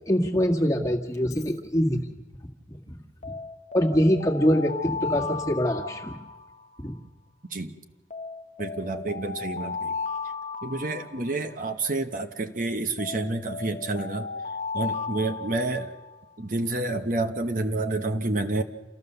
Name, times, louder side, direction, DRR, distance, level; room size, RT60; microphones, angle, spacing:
voice 1, 0.1-2.1 2.7-3.0 3.2-3.3 3.7-6.2 6.8-6.9, equal, 15° left, 2 dB, 1.7 m, -24 dB
Alarm, 1.1-1.5 3.2-7.0 8.1-11.9 13.0-16.2, left 4 dB, 35° left, 0.9 m, -35 dB
voice 2, 8.6-10.0 10.6-14.3 14.7-15.9 16.4-18.6, right 2 dB, 45° right, 6 dB, 1.0 m, -29 dB
28.0 x 15.0 x 6.8 m, 1.1 s
head